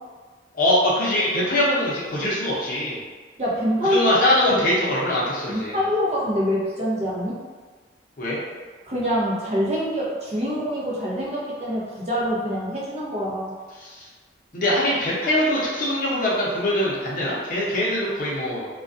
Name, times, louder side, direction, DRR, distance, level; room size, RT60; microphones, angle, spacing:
voice 1, 0.5-3.0 3.8-5.8 8.2-8.4 13.8-14.1 14.5-18.7, left 1 dB, 50° left, -6 dB, 0.6 m, -22 dB
voice 2, 3.4-4.1 4.4-4.7 5.5-7.4 8.9-13.5, equal, 35° right, -6 dB, 0.6 m, -25 dB
2.3 x 2.2 x 2.5 m, 1.4 s
head